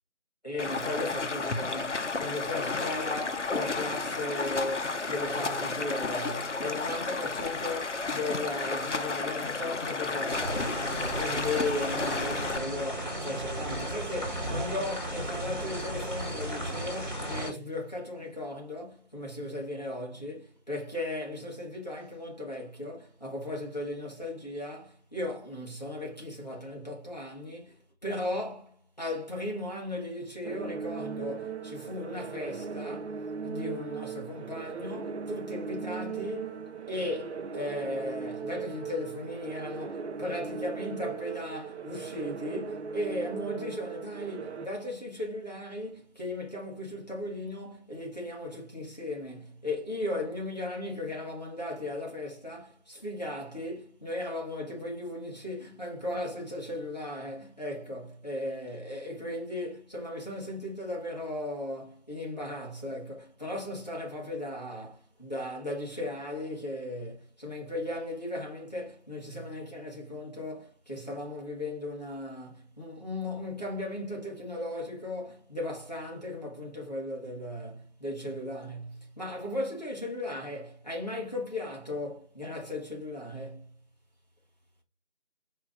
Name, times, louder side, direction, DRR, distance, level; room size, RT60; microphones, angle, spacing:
voice 1, 0.4-36.6 36.9-83.7, left 1 dB, 35° left, 1.4 m, -36 dB
Stream, 0.6-12.6, left 3 dB, 75° left, 0.7 m, -32 dB
sound 1, 10.3-17.5, right 1 dB, 40° right, 1.9 m, -35 dB
sound 2, 30.4-44.7, right 5 dB, 65° right, 0.5 m, -38 dB
4.5 x 3.2 x 3.6 m
figure-of-eight pair, 180°, 36 cm